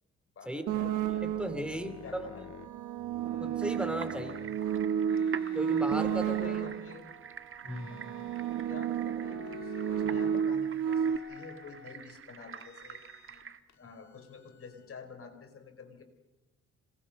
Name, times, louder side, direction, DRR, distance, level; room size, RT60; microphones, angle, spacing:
voice 1, 0.4-1.3 1.6-2.4 6.1-7.2 8.5-13.4 13.8-16.0, left 5 dB, 45° left, 6 dB, 4.5 m, -49 dB
sound 1, 0.7-1.7 2.5-7.0 7.8-11.2, right 8 dB, 75° right, 1.2 m, -31 dB
sound 2, 1.0-4.6 5.0-7.1 7.6-8.9 9.2-10.5 10.8-12.0 12.5-13.4 13.7-14.9, left 11 dB, 65° left, 1.8 m, -51 dB
voice 2, 1.2-2.3 3.4-4.4 5.5-6.6 7.6-8.0, right 1 dB, 5° right, 9 dB, 2.7 m, -36 dB
sound 3, 3.6-13.6, right 7 dB, 45° right, 1.5 m, -47 dB
26.5 x 20.0 x 6.5 m, 1.0 s
cardioid pair, 90°, 30 cm